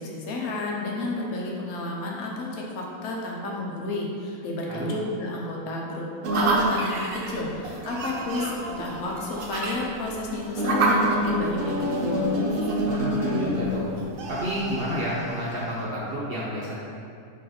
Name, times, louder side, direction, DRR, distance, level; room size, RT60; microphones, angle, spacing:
voice 1, 0.0-6.1 6.3-12.2, left 2 dB, 80° left, -2 dB, 1.2 m, -31 dB
sound 1, 6.2-15.8, right 1 dB, 80° right, 0.5 m, -27 dB
voice 2, 12.9-13.9 14.3-16.7, equal, 50° right, -6 dB, 0.7 m, -30 dB
4.2 x 3.1 x 3.9 m, 2.4 s
omnidirectional pair, 1.5 m